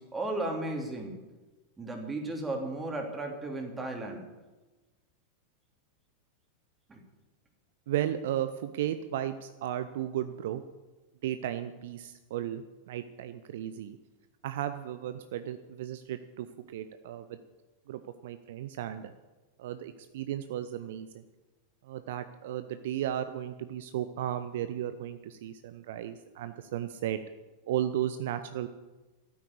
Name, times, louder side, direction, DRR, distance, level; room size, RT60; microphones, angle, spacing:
voice 1, 0.1-1.1 1.8-4.2 6.9-7.0, right 2 dB, 15° right, 2 dB, 2.9 m, -34 dB
voice 2, 7.9-10.6 11.2-14.0 14.4-17.4 17.9-19.1 19.6-21.1 21.9-27.2 27.7-28.7, right 11 dB, 55° right, 11 dB, 0.6 m, -34 dB
13.0 x 9.5 x 8.5 m, 1.2 s
figure-of-eight pair, 90°, 0 cm